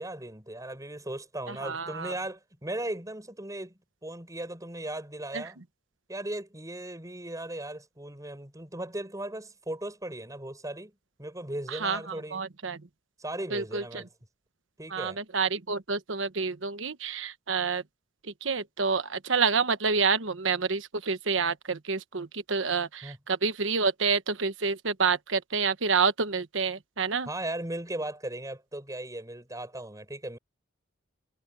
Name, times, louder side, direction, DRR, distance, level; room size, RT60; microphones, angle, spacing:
voice 1, 0.0-5.6 6.1-10.9 11.2-12.4 13.2-14.1 14.8-15.2 23.0-23.2 27.2-30.4, right 1 dB, 20° right, 6.6 m, -37 dB
voice 2, 1.6-2.1 11.8-12.0 12.3-12.8 13.5-13.8 14.9-17.8 18.4-27.3, right 5 dB, 75° right, 1.2 m, -28 dB
head